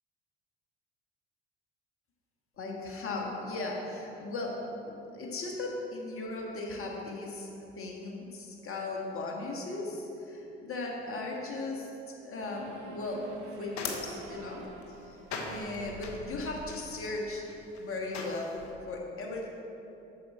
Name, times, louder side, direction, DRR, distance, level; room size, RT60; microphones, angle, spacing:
voice 1, 2.6-4.6 4.8-7.5 7.8-11.9 12.2-13.2 13.6-14.6 15.0-15.2 15.4-17.4 17.8-18.5 18.9-19.5, left 2 dB, 40° left, -1 dB, 1.7 m, -37 dB
sound 1, 12.4-17.1, right 4 dB, 70° right, 0.9 m, -48 dB
sound 2, 13.1-18.7, left 4 dB, 55° left, 1.2 m, -42 dB
8.3 x 6.3 x 4.4 m, 2.9 s
hypercardioid pair, 60°, 33 cm